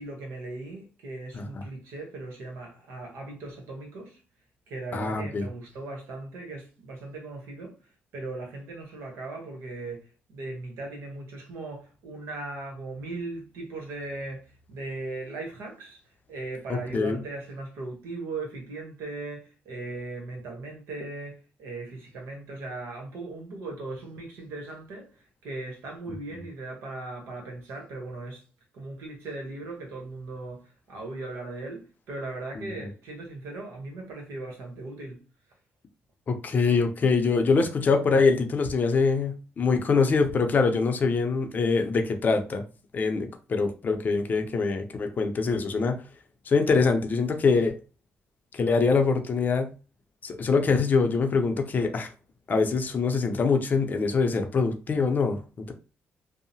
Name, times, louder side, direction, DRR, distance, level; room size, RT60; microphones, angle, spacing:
voice 1, 0.0-4.2 4.7-7.7 8.1-10.0 10.3-16.0 16.3-25.1 25.4-28.4 28.7-35.2, right 2 dB, 85° right, 1.0 m, -38 dB
voice 2, 4.9-5.5 16.7-17.2 32.6-32.9 36.3-42.6 42.9-46.0 46.5-47.7 48.5-49.7 50.2-52.1 52.5-55.4, left 4 dB, 45° left, 0.5 m, -24 dB
2.7 x 2.0 x 2.7 m
cardioid pair, 95°, 4 cm